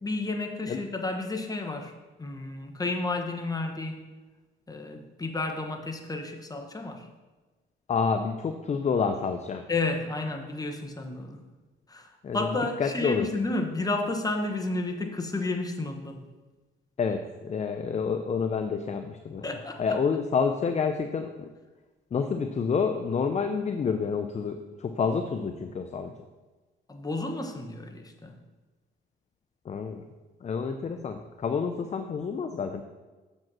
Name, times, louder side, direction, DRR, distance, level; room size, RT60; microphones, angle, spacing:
voice 1, 0.0-1.9 2.2-4.1 4.7-7.1 9.7-11.4 11.9-16.2 19.4-20.0 26.9-28.4, left 2 dB, 20° left, 4 dB, 1.1 m, -31 dB
voice 2, 7.9-9.7 12.2-13.3 17.0-19.5 19.8-21.5 22.1-26.1 29.6-30.0 30.4-32.8, left 5 dB, 35° left, 7 dB, 0.5 m, -28 dB
7.0 x 5.3 x 6.1 m, 1.2 s
cardioid pair, 90°, 20 cm